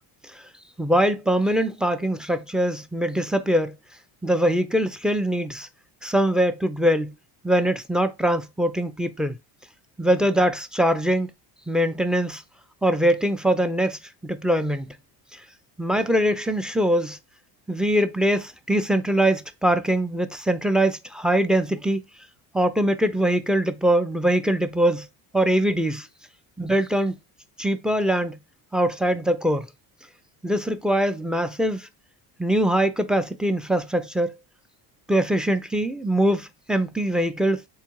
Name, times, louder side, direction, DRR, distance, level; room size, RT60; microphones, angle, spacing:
voice 1, 0.8-3.7 4.2-5.7 6.0-7.1 7.4-9.3 10.0-11.3 11.7-12.4 12.8-14.9 15.8-17.2 17.7-22.0 22.5-25.1 25.3-26.1 26.6-27.1 27.6-28.4 28.7-29.7 30.4-31.9 32.4-34.3 35.1-37.6, right 1 dB, ahead, 0.3 m, -22 dB
3.7 x 2.3 x 4.5 m
cardioid pair, 100°, 46 cm